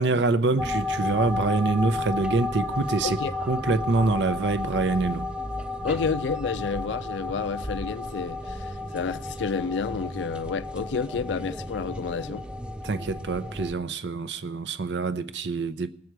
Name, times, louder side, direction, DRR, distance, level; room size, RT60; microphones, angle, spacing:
voice 1, 0.0-5.3 12.8-15.9, right 3 dB, 70° right, 0.6 m, -25 dB
sound 1, 0.6-13.7, left 2 dB, 5° right, 0.4 m, -32 dB
voice 2, 3.0-3.3 5.8-12.4, left 5 dB, 70° left, 0.4 m, -30 dB
19.5 x 7.9 x 4.7 m
head